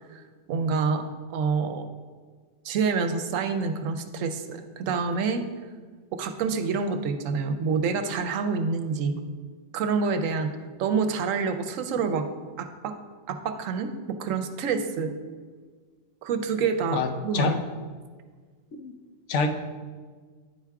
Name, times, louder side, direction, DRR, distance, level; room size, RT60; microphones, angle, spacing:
voice 1, 0.5-1.0 1.3-1.9 2.6-5.4 6.1-9.2 9.7-10.5 10.8-12.3 12.6-12.9 13.3-15.1 16.2-17.6, right 5 dB, 80° right, 8 dB, 1.0 m, -27 dB
voice 2, 16.9-17.6 18.8-18.9 19.3-19.5, left 4 dB, 70° left, 5 dB, 1.0 m, -26 dB
9.5 x 3.5 x 4.6 m, 1.5 s
omnidirectional pair, 1.3 m